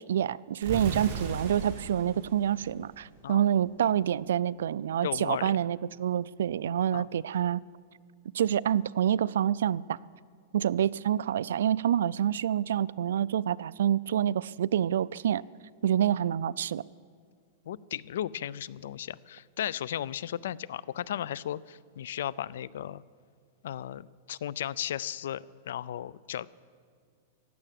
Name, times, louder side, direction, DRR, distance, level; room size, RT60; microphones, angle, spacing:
voice 1, 0.0-7.6 8.3-10.0 10.5-15.4 15.8-16.8, right 10 dB, 90° right, 21 dB, 0.3 m, -27 dB
sound 1, 0.6-3.5, right 4 dB, 50° right, 2.9 m, -38 dB
voice 2, 5.0-5.6 6.9-7.1 17.7-23.0 23.6-26.5, left 11 dB, 80° left, 22 dB, 0.4 m, -35 dB
15.5 x 11.0 x 7.6 m, 2.1 s
supercardioid pair, 160°, 0 cm